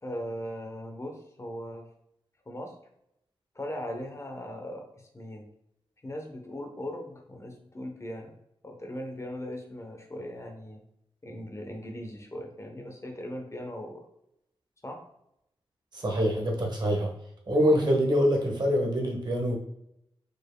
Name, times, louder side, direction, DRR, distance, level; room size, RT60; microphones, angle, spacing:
voice 1, 0.0-1.9 2.5-2.7 3.5-5.5 6.0-8.3 8.6-10.8 11.2-14.0 14.8-15.0, equal, 30° left, 3 dB, 0.8 m, -39 dB
voice 2, 15.9-17.1 17.5-19.6, equal, 45° right, 0 dB, 1.2 m, -25 dB
4.9 x 4.4 x 2.2 m, 0.78 s
cardioid pair, 65°, 10 cm